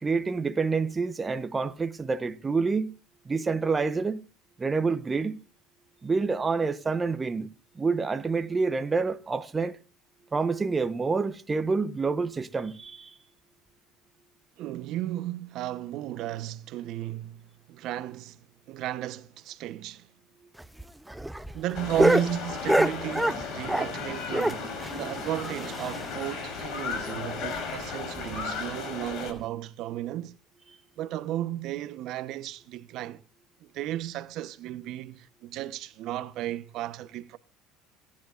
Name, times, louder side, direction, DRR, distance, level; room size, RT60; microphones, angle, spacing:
voice 1, 0.0-2.9 3.3-4.2 4.6-5.4 6.0-7.5 7.8-9.8 10.3-13.1, right 4 dB, 20° right, 0.9 m, -27 dB
voice 2, 14.6-20.1 21.5-30.4 31.0-33.2 33.6-37.4, right 13 dB, 60° right, 0.9 m, -34 dB
sound 1, 20.6-24.0 24.3-26.3 26.6-26.7 27.0-27.1 27.5-27.6 28.1-28.4 29.3-29.4, right 1 dB, 5° right, 0.6 m, -27 dB
sound 2, 21.7-29.3, left 5 dB, 55° left, 5.1 m, -35 dB
26.5 x 10.5 x 2.5 m
supercardioid pair, 105°, 0 cm